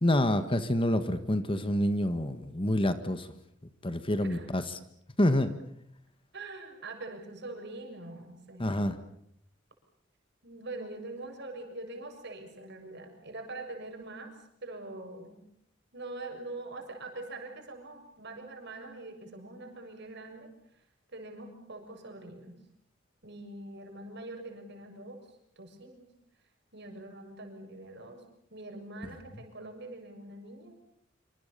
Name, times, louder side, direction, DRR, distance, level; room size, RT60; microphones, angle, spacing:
voice 1, 0.0-3.3 3.8-4.8 5.2-5.5 8.6-9.0, left 1 dB, 25° left, 10 dB, 1.6 m, -27 dB
voice 2, 4.2-4.5 6.3-8.7 10.4-15.4 15.9-20.5 21.1-22.6 23.2-25.2 25.6-26.1 26.7-28.2 28.5-30.7, right 2 dB, 60° right, 4 dB, 6.7 m, -44 dB
27.0 x 26.0 x 6.9 m, 0.72 s
head